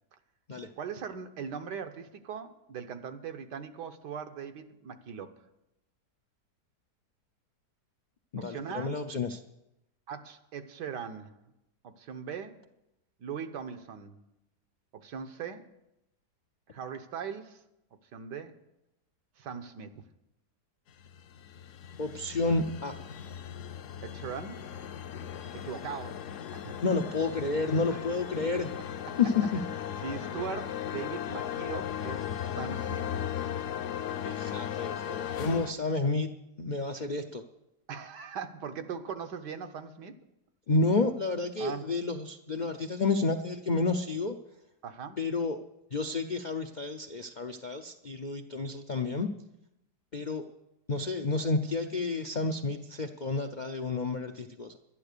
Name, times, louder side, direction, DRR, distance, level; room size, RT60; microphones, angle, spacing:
voice 1, 0.8-5.3 8.4-9.0 10.1-11.3 11.8-12.6 13.2-14.2 14.9-15.7 16.7-17.6 18.1-18.5 19.4-20.0 24.0-24.7 25.6-26.2 26.5-26.8 27.9-28.0 29.1-29.2 30.0-33.1 37.9-40.2 41.6-41.9 44.8-45.2, right 7 dB, 85° right, 7 dB, 1.6 m, -40 dB
voice 2, 8.3-9.4 22.0-23.0 26.8-28.7 29.2-29.6 34.2-36.3 36.6-37.4 40.7-44.3 45.2-45.6 45.9-49.3 50.1-50.4 50.9-54.8, left 3 dB, 85° left, 6 dB, 0.4 m, -30 dB
sound 1, 21.0-35.7, left 9 dB, 65° left, 0.8 m, -37 dB
11.5 x 11.0 x 6.7 m, 0.86 s
omnidirectional pair, 1.8 m